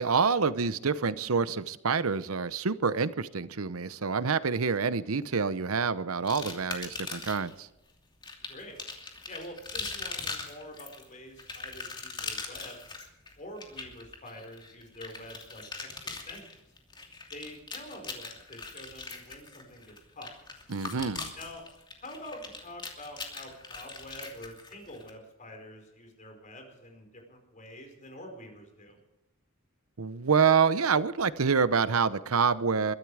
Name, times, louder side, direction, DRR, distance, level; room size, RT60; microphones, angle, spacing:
voice 1, 0.0-7.7 20.7-21.3 30.0-32.9, right 5 dB, 85° right, 15 dB, 0.8 m, -27 dB
sound 1, 6.3-7.5 8.2-25.1, left 4 dB, 20° left, 2.8 m, -41 dB
voice 2, 9.3-13.0 13.4-16.5 17.3-20.4 21.3-21.6 22.0-29.0, left 1 dB, 35° left, 4 dB, 4.8 m, -46 dB
22.5 x 12.5 x 4.9 m, 0.93 s
head